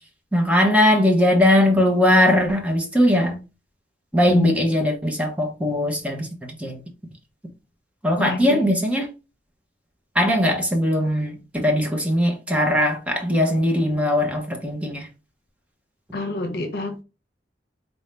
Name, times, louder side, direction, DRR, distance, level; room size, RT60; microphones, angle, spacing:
voice 1, 0.3-3.4 4.1-6.3 6.6-6.8 8.0-9.1 10.1-15.1, left 1 dB, 10° right, 0.9 m, -20 dB
voice 2, 8.2-8.6 16.1-17.0, left 3 dB, 60° left, 0.7 m, -27 dB
4.1 x 2.6 x 3.3 m
head